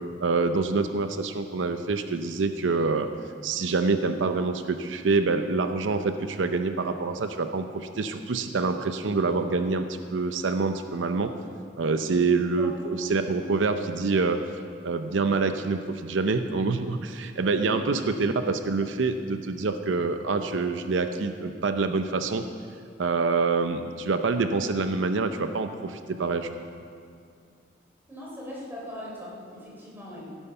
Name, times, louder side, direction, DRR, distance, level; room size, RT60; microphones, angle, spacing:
voice 1, 0.2-3.1 3.4-9.8 10.1-11.3 11.8-14.4 14.8-22.5 23.0-26.5, right 4 dB, 90° right, 8 dB, 0.6 m, -26 dB
voice 2, 28.1-30.4, left 1 dB, 10° right, -5 dB, 3.6 m, -39 dB
16.5 x 9.1 x 5.6 m, 2.3 s
head